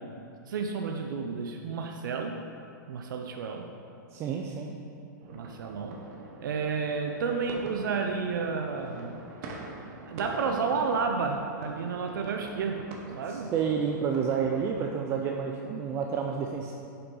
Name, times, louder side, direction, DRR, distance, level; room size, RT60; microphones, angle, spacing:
voice 1, 0.5-2.4 2.9-3.7 5.3-6.1 6.4-9.2 10.1-12.8 13.2-13.5, right 5 dB, 80° right, 4 dB, 0.6 m, -31 dB
voice 2, 4.1-4.8 13.3-16.7, right 6 dB, 25° right, 1 dB, 0.4 m, -30 dB
sound 1, 5.2-14.9, right 2 dB, 45° right, 1.0 m, -44 dB
7.6 x 5.6 x 3.8 m, 2.5 s
hypercardioid pair, 140°, 11 cm